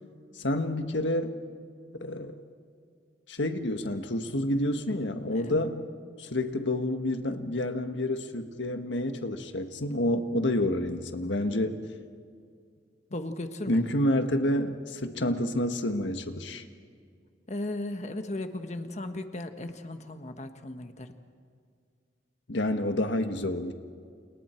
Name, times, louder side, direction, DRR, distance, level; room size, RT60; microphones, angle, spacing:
voice 1, 0.3-1.3 2.0-2.3 3.3-5.8 6.2-11.8 13.7-16.6 22.5-23.7, left 1 dB, 90° left, 7 dB, 1.6 m, -29 dB
voice 2, 5.3-5.7 13.1-13.8 17.5-21.2, left 1 dB, 40° left, 7 dB, 1.4 m, -36 dB
29.5 x 29.0 x 4.6 m, 2.2 s
head